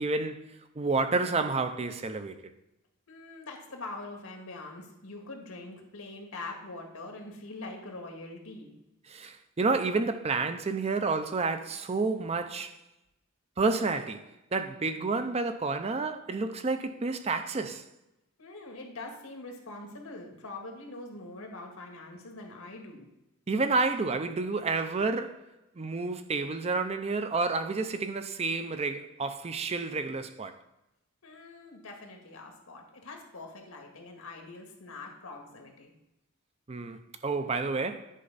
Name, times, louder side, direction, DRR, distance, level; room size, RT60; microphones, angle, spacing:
voice 1, 0.0-2.5 9.1-12.8 13.6-17.9 23.5-25.4 25.8-30.5 36.7-38.1, right 3 dB, 30° right, 0.5 m, -30 dB
voice 2, 3.1-8.7 18.4-23.1 31.2-35.9, left 2 dB, 85° left, 1.7 m, -43 dB
10.0 x 5.3 x 4.0 m
head